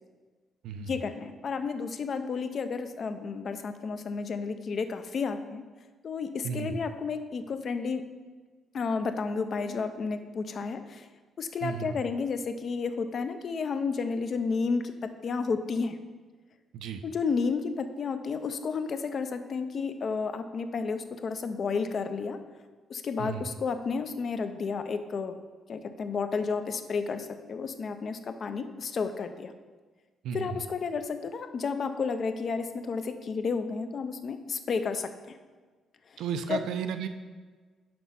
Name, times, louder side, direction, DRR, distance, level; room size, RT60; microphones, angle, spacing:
voice 1, 0.9-5.6 6.0-8.0 8.7-11.1 11.4-16.0 17.0-22.4 22.9-25.3 25.7-29.5 30.3-35.4 36.1-36.2 36.5-36.6, left 5 dB, 35° left, 9 dB, 0.4 m, -32 dB
voice 2, 6.4-6.8 11.6-12.0 16.7-17.0 23.2-23.5 30.2-30.6 36.2-37.1, right 7 dB, 85° right, 8 dB, 0.5 m, -34 dB
5.9 x 5.0 x 5.4 m, 1.4 s
cardioid pair, 175°, 0 cm